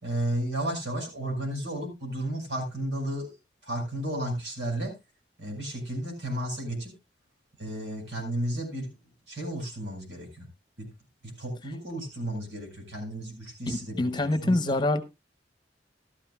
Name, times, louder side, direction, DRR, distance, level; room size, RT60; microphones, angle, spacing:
voice 1, 0.0-3.3 3.6-4.9 5.4-6.9 7.6-8.9 9.3-10.4 10.8-10.9 11.4-14.7, right 1 dB, 90° right, 6.5 m, -33 dB
voice 2, 13.7-15.0, left 2 dB, 25° left, 0.9 m, -25 dB
15.0 x 13.0 x 2.3 m
head